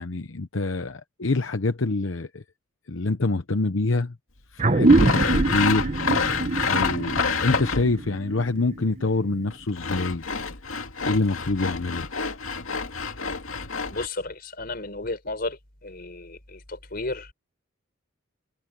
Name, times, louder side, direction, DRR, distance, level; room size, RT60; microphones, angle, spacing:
voice 1, 0.0-2.4 2.9-4.1 4.5-5.9 6.7-10.2 11.0-12.1, left 3 dB, 70° left, 0.9 m, -26 dB
sound 1, 4.6-9.5, right 2 dB, 35° right, 1.0 m, -23 dB
Sawing, 4.8-8.1 9.5-14.1, left 5 dB, 85° left, 2.4 m, -28 dB
voice 2, 13.9-15.6 15.8-17.3, left 2 dB, 50° left, 4.8 m, -33 dB
head